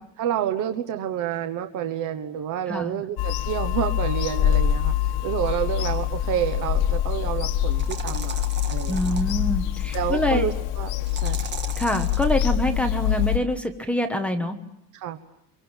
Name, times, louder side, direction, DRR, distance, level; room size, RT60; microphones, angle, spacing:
voice 1, 0.2-4.9 5.2-9.2 9.9-11.4 14.9-15.2, right 10 dB, 55° right, 7 dB, 1.3 m, -29 dB
voice 2, 2.7-3.0 8.9-10.5 11.8-14.6, left 1 dB, 5° left, 5 dB, 1.3 m, -25 dB
Bird vocalization bird call bird song / Telephone, 3.2-13.4, left 11 dB, 85° left, 1.6 m, -25 dB
sound 1, 6.4-6.5 7.7-9.3 11.0-12.3, right 6 dB, 30° right, 1.8 m, -37 dB
26.0 x 23.5 x 9.0 m, 0.77 s
cardioid pair, 180°, 37 cm